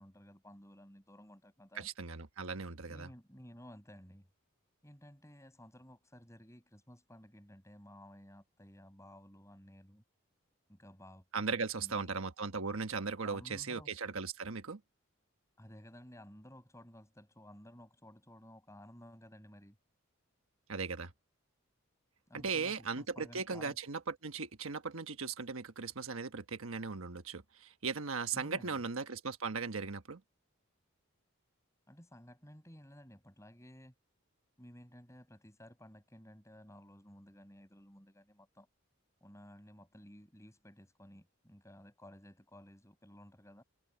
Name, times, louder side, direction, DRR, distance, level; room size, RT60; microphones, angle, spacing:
voice 1, 0.0-1.9 2.8-4.3 4.8-10.0 10.7-11.2 11.5-12.2 13.2-13.9 15.6-19.8 22.3-23.8 28.3-28.8 31.9-33.9 34.6-38.7 39.2-43.6, equal, 15° left, 7.9 m, -55 dB
voice 2, 1.7-3.1 11.3-14.8 20.7-21.1 22.3-30.2, right 5 dB, 75° right, 1.2 m, -38 dB
head